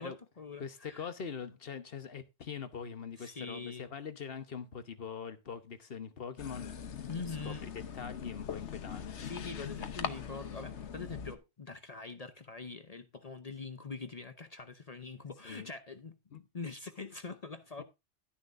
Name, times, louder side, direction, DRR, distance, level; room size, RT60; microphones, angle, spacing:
voice 1, 0.0-1.1 3.2-3.9 7.1-7.7 9.2-17.8, left 4 dB, 40° left, 0.7 m, -44 dB
voice 2, 0.6-6.7 7.4-9.3 15.4-15.7 16.3-16.4 17.8-17.9, left 6 dB, 55° left, 1.2 m, -43 dB
sound 1, 6.4-11.4, left 7 dB, 75° left, 1.2 m, -41 dB
11.5 x 10.0 x 2.5 m
omnidirectional pair, 1.2 m